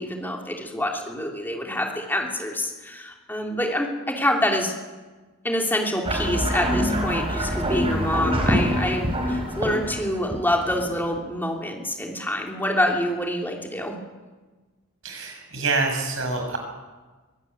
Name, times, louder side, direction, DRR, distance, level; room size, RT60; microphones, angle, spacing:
voice 1, 0.0-4.7 5.4-13.9, left 1 dB, 10° left, 1 dB, 3.2 m, -26 dB
sound 1, 6.0-11.2, equal, 25° right, 4.8 m, -25 dB
voice 2, 15.0-16.6, right 3 dB, 65° right, 3 dB, 5.9 m, -26 dB
23.5 x 16.0 x 9.5 m, 1.3 s
head